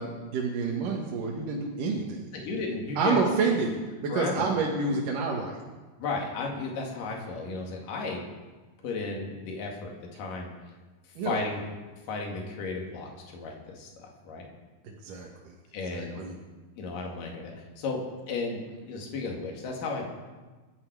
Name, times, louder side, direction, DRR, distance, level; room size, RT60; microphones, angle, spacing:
voice 1, 0.0-2.3 3.0-3.7 4.0-5.6 11.2-11.4 14.8-15.3 15.9-16.3, right 4 dB, 70° right, -1 dB, 3.0 m, -28 dB
voice 2, 2.3-3.2 4.1-4.5 6.0-8.2 8.8-10.5 11.2-11.6 12.1-14.5 15.7-16.3 16.8-20.1, left 3 dB, 70° left, 0 dB, 3.7 m, -34 dB
25.0 x 9.4 x 4.7 m, 1.3 s
omnidirectional pair, 4.1 m